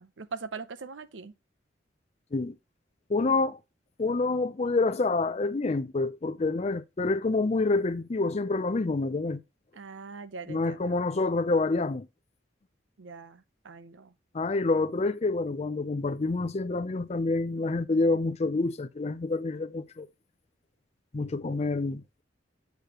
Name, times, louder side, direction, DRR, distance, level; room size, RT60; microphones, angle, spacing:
voice 1, 0.0-1.3 9.7-11.0 13.0-14.1, right 4 dB, 85° right, 0.6 m, -42 dB
voice 2, 3.1-3.6 4.0-9.4 10.5-12.1 14.3-20.1 21.1-22.0, left 3 dB, 35° left, 0.5 m, -27 dB
8.0 x 6.7 x 2.9 m
head